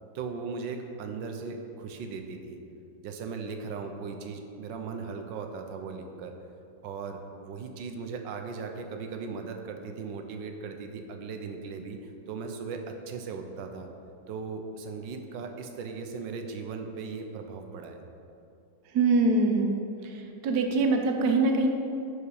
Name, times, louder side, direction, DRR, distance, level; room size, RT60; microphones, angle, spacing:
voice 1, 0.1-2.6 3.0-6.3 6.8-13.9 14.3-18.0, right 5 dB, 90° right, 5 dB, 1.5 m, -38 dB
voice 2, 18.9-19.7 20.4-21.7, right 3 dB, 65° right, 4 dB, 1.3 m, -23 dB
10.0 x 5.0 x 4.9 m, 2.6 s
omnidirectional pair, 1.9 m